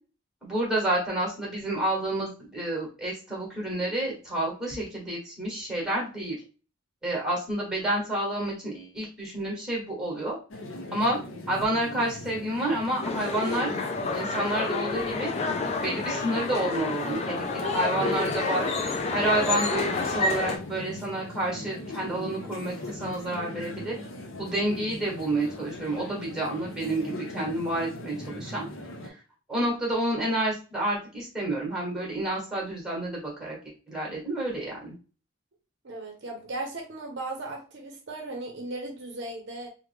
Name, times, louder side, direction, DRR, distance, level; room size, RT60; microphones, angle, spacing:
voice 1, 0.4-6.4 7.0-10.3 10.9-11.2 11.5-13.7 14.1-15.3 15.8-18.7 19.1-23.9 24.4-28.6 29.0-29.2 29.5-33.6 33.9-34.9, right 1 dB, 5° right, -3 dB, 1.2 m, -29 dB
sound 1, 10.5-29.1, left 1 dB, 65° left, 0.6 m, -40 dB
sound 2, 13.0-20.6, left 3 dB, 30° left, 0.3 m, -29 dB
voice 2, 35.8-39.7, right 2 dB, 55° right, 2 dB, 0.6 m, -37 dB
3.2 x 2.1 x 3.3 m, 0.36 s
head